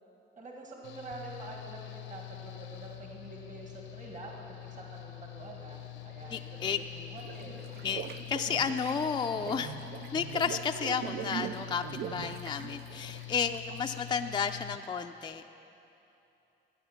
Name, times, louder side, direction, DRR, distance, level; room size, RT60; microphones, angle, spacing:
voice 1, 0.4-7.6, right 3 dB, 40° right, -1 dB, 1.8 m, -46 dB
Engine / Mechanical fan, 0.8-14.8, left 15 dB, 85° left, 0.8 m, -45 dB
voice 2, 6.3-6.8 7.8-9.8 10.1-15.4, left 6 dB, 25° left, 6 dB, 0.4 m, -32 dB
Gargling Underwater, 7.2-13.9, right 10 dB, 55° right, 0.4 m, -42 dB
13.0 x 8.7 x 5.8 m, 2.9 s
cardioid pair, 90°, 20 cm